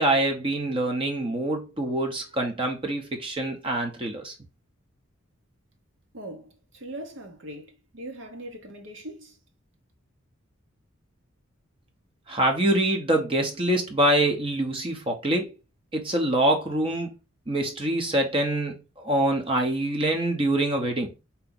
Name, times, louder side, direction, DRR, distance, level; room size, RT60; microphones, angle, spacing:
voice 1, 0.0-4.3 12.3-15.5 15.9-17.1 17.5-21.1, right 1 dB, 25° right, 0.8 m, -25 dB
voice 2, 6.1-9.4, right 1 dB, 65° right, 1.1 m, -40 dB
4.8 x 2.9 x 3.8 m
head